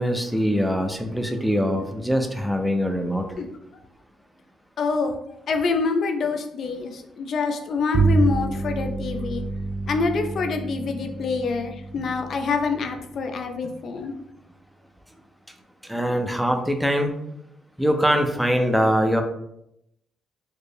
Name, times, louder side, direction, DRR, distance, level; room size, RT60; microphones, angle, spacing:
voice 1, 0.0-3.3 15.8-17.1 17.8-19.2, equal, ahead, 5 dB, 0.5 m, -23 dB
voice 2, 4.8-5.1 5.5-9.4 9.9-14.1, left 4 dB, 60° left, 5 dB, 0.5 m, -26 dB
Bowed string instrument, 7.9-13.6, right 3 dB, 55° right, 0.3 m, -27 dB
4.2 x 2.0 x 3.3 m, 0.78 s
cardioid pair, 90°, 0 cm